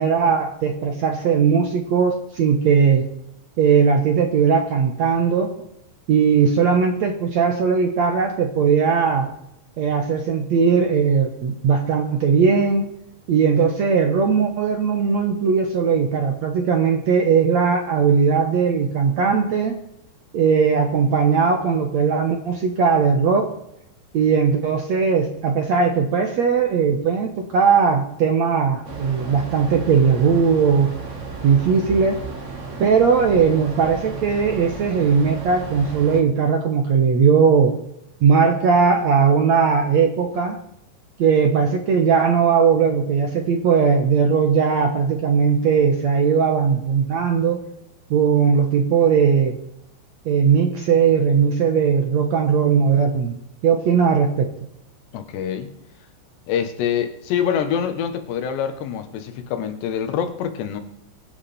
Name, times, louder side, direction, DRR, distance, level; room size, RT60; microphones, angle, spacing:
voice 1, 0.0-3.1 3.6-5.7 6.1-9.3 9.8-12.9 13.3-19.8 20.3-23.5 24.1-30.9 31.4-32.2 32.8-37.8 38.2-40.6 41.2-47.6 48.1-49.6 50.3-53.3 53.6-54.5, right 6 dB, 65° right, 4 dB, 1.8 m, -18 dB
sound 1, 28.8-36.2, right 3 dB, 40° right, 1.0 m, -34 dB
voice 2, 55.1-55.7 56.5-60.8, left 8 dB, 90° left, 8 dB, 3.6 m, -25 dB
23.5 x 9.7 x 4.3 m, 0.77 s
omnidirectional pair, 4.8 m